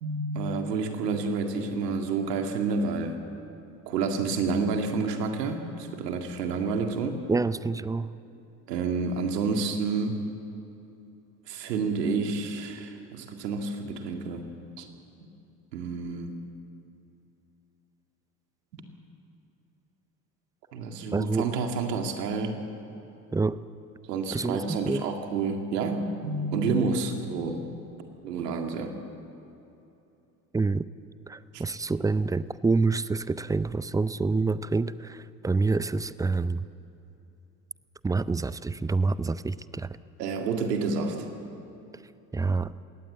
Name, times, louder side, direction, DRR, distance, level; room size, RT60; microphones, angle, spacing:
voice 1, 0.0-3.2 3.9-7.2 8.7-10.2 11.5-14.4 14.8-14.9 15.7-16.4 18.7-18.8 20.7-22.6 24.1-27.6 28.2-29.0 31.5-31.6 40.2-41.3, right 4 dB, 80° right, 4 dB, 2.2 m, -29 dB
voice 2, 7.3-8.1 21.1-21.5 23.3-23.6 24.3-25.1 30.5-30.9 31.3-36.7 38.0-40.0 42.3-42.7, right 3 dB, 10° right, 17 dB, 0.4 m, -27 dB
21.5 x 17.5 x 8.0 m, 2.8 s
hypercardioid pair, 70°, 47 cm